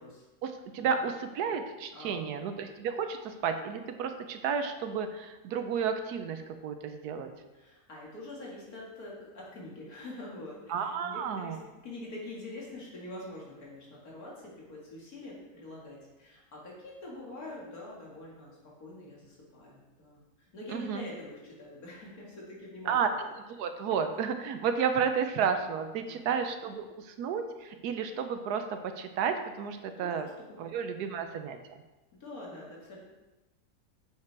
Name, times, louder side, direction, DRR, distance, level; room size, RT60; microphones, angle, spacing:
voice 1, 0.4-7.3 10.7-11.6 20.7-21.1 22.9-23.3 23.6-30.3 30.6-31.6, right 6 dB, 75° right, 7 dB, 1.2 m, -32 dB
voice 2, 1.9-2.2 7.5-23.2 24.1-24.2 26.1-26.2 30.0-30.7 32.1-33.0, left 2 dB, 65° left, -4 dB, 2.4 m, -45 dB
6.7 x 5.7 x 4.6 m, 1.1 s
omnidirectional pair, 1.7 m